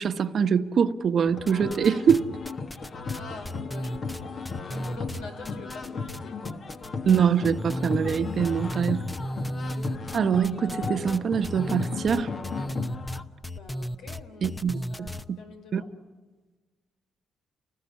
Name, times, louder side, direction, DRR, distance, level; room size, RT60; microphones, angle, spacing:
voice 1, 0.0-2.2 7.1-9.0 10.1-12.3 14.4-15.1 15.7-15.8, right 7 dB, 55° right, 1.1 m, -24 dB
sound 1, 1.3-13.2, left 4 dB, 50° left, 2.0 m, -35 dB
sound 2, 1.5-2.2 2.4-6.2 6.4-7.2 7.4-15.2, equal, 10° left, 0.9 m, -35 dB
voice 2, 3.1-6.6 13.4-14.5 14.9-15.9, left 3 dB, 85° left, 5.1 m, -45 dB
30.0 x 20.0 x 8.4 m
cardioid pair, 90°, 0 cm